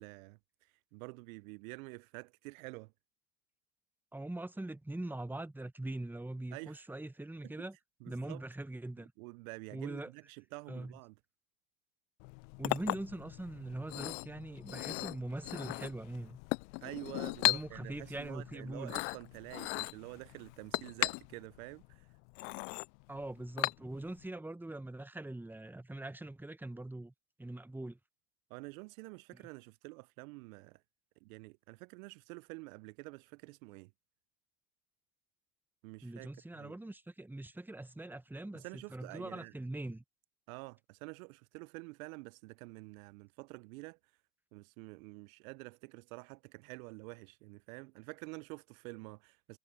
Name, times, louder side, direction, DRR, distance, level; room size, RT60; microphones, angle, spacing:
voice 1, 0.0-2.9 6.5-6.9 7.4-7.5 8.0-8.4 9.2-11.1 16.8-22.1 28.5-30.8 31.2-33.9 35.8-36.3 36.6-36.8 38.5-39.5 40.5-44.0 44.5-49.6, right 26 dB, 55° right, 0.7 m, -48 dB
voice 2, 4.1-7.8 8.1-9.1 9.7-10.1 10.7-10.9 12.6-16.4 17.4-18.9 23.1-27.1 27.4-28.0 29.3-29.4 36.0-40.0, right 2 dB, 5° right, 1.4 m, -42 dB
Chink clink, 12.2-24.2, left 33 dB, 50° left, 0.4 m, -38 dB
hypercardioid pair, 85°, 49 cm